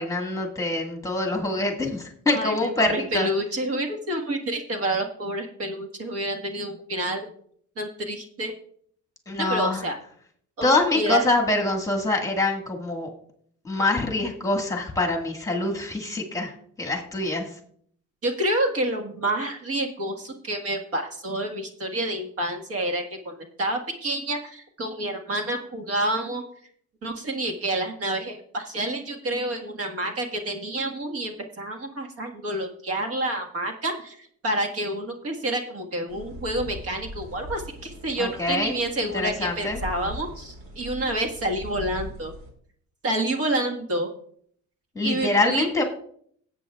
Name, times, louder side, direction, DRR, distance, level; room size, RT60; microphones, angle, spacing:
voice 1, 0.0-3.3 9.3-9.8 10.6-13.1 13.6-16.5 16.8-17.5 38.2-38.7 39.1-39.8 45.0-45.8, left 2 dB, 10° left, 1 dB, 1.7 m, -25 dB
voice 2, 2.3-7.3 7.8-8.5 9.4-10.0 10.6-11.2 18.2-26.4 27.0-42.3 43.0-44.1 45.0-45.7, right 1 dB, 50° right, 4 dB, 1.6 m, -28 dB
sound 1, 36.1-42.5, equal, 70° right, 2.6 m, -40 dB
17.5 x 8.3 x 2.4 m, 0.62 s
cardioid pair, 125°, 30 cm